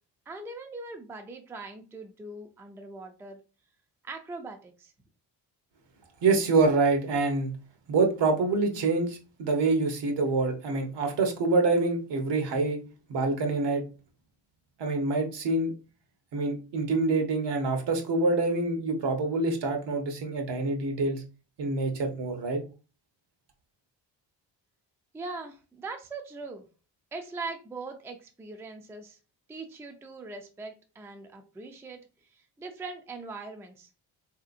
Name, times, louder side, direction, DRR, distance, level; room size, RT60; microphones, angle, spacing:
voice 1, 0.3-3.4 4.0-4.9 25.1-26.7 27.1-29.2 29.5-33.9, right 3 dB, 5° right, 0.4 m, -41 dB
voice 2, 6.2-7.5 7.9-12.8 13.1-13.8 14.8-15.7 16.3-21.2 21.6-22.6, right 3 dB, 65° right, 0.9 m, -26 dB
3.2 x 2.8 x 2.5 m
cardioid pair, 85°, 44 cm